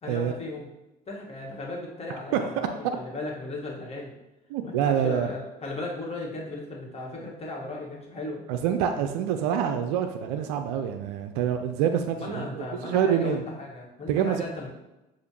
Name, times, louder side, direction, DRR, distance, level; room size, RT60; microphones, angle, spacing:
voice 1, 0.0-0.7 1.1-4.1 4.6-8.4 12.2-14.7, left 2 dB, 30° left, -2 dB, 1.5 m, -36 dB
voice 2, 4.5-5.3 8.5-13.4 14.1-14.4, right 8 dB, 70° right, 7 dB, 0.4 m, -26 dB
6.8 x 2.5 x 3.0 m, 0.97 s
hypercardioid pair, 60°, 20 cm